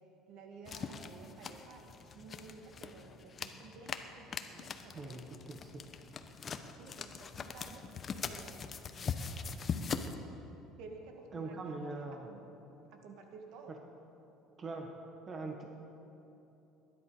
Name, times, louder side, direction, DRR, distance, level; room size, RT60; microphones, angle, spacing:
voice 1, 0.3-5.6 6.7-8.6 10.8-12.5 12.9-13.8, right 4 dB, 70° right, 3 dB, 2.1 m, -53 dB
sound 1, 0.7-10.2, left 5 dB, 35° left, 0.8 m, -42 dB
voice 2, 4.9-5.8 11.3-12.3 13.7-13.8 14.6-14.9 15.3-15.6, right 3 dB, 35° right, 2 dB, 1.4 m, -42 dB
20.0 x 11.0 x 5.0 m, 3.0 s
cardioid pair, 115°, 0 cm